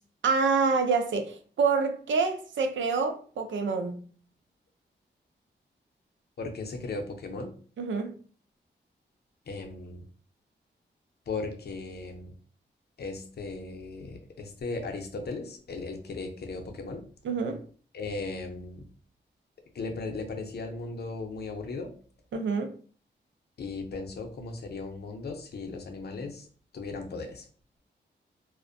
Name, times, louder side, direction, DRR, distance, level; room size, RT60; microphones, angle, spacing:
voice 1, 0.2-4.0 7.8-8.1 17.2-17.6 22.3-22.7, right 4 dB, 80° right, 0.4 m, -27 dB
voice 2, 6.4-7.5 9.5-10.0 11.3-12.3 13.0-17.0 17.9-18.9 19.7-21.9 23.6-26.5 26.7-27.4, left 3 dB, 60° left, 0.5 m, -37 dB
2.4 x 2.1 x 2.5 m
cardioid pair, 80°, 19 cm